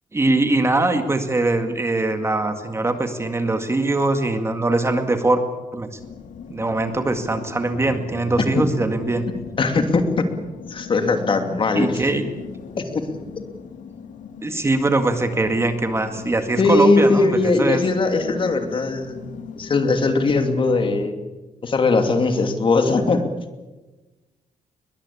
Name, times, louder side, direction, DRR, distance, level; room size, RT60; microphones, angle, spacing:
voice 1, 0.1-5.4 5.7-6.0 6.5-9.3 11.7-12.3 14.4-17.8, right 2 dB, 20° right, 7 dB, 2.0 m, -22 dB
sound 1, 6.0-21.1, left 6 dB, 60° left, 2.2 m, -39 dB
voice 2, 9.6-10.3 10.7-12.1 12.8-13.0 16.6-19.2 19.6-21.1 21.6-23.2, left 3 dB, 35° left, 6 dB, 2.7 m, -19 dB
22.0 x 21.5 x 8.6 m, 1.2 s
cardioid pair, 135°, 15 cm